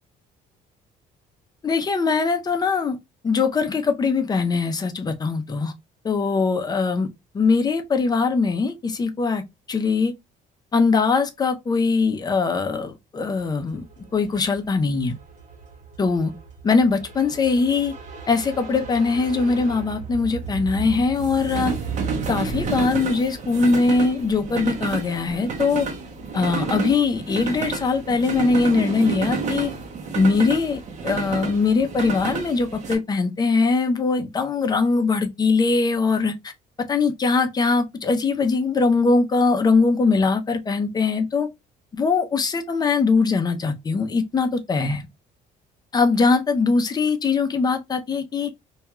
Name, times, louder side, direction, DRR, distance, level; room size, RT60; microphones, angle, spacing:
voice 1, 1.6-3.0 3.2-5.7 6.0-7.1 7.3-9.4 9.7-10.1 10.7-13.8 14.1-15.1 16.0-16.3 16.6-17.9 18.3-21.7 22.3-25.9 26.3-29.7 30.2-36.5 36.9-41.5 42.0-45.1 45.9-48.5, left 4 dB, 25° left, 0.5 m, -21 dB
sound 1, 13.5-33.0, right 5 dB, 45° right, 0.7 m, -31 dB
2.3 x 2.2 x 2.9 m
cardioid pair, 110°, 17 cm